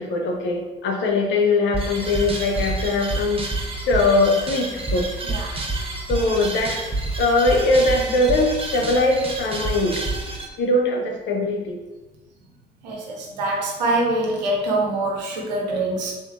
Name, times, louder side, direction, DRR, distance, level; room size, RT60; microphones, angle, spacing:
voice 1, 0.0-5.1 5.7-6.7 7.2-10.0 10.6-11.8, left 2 dB, 60° left, 1 dB, 0.9 m, -21 dB
sound 1, 1.7-10.5, right 2 dB, 25° right, 1.0 m, -28 dB
voice 2, 5.2-5.6 12.8-16.1, right 2 dB, 85° right, -1 dB, 0.8 m, -24 dB
3.6 x 3.1 x 3.6 m, 1.1 s
hypercardioid pair, 45°, 21 cm